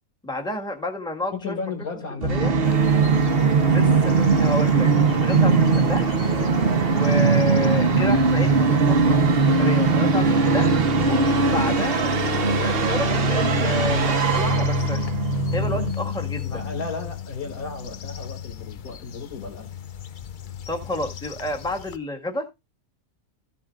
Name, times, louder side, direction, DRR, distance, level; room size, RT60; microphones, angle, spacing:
voice 1, 0.2-1.5 2.3-2.5 3.7-6.1 6.9-9.2 9.4-10.7 11.1-15.0 15.5-16.5 20.7-22.5, left 1 dB, 5° left, 1.5 m, -30 dB
voice 2, 1.3-2.7 5.8-6.0 6.4-6.6 16.4-19.7, left 4 dB, 80° left, 2.7 m, -34 dB
Musical instrument, 2.2-15.9, right 4 dB, 45° right, 1.1 m, -20 dB
sound 1, 2.6-22.0, left 10 dB, 60° left, 0.5 m, -32 dB
15.0 x 7.1 x 2.4 m
omnidirectional pair, 1.5 m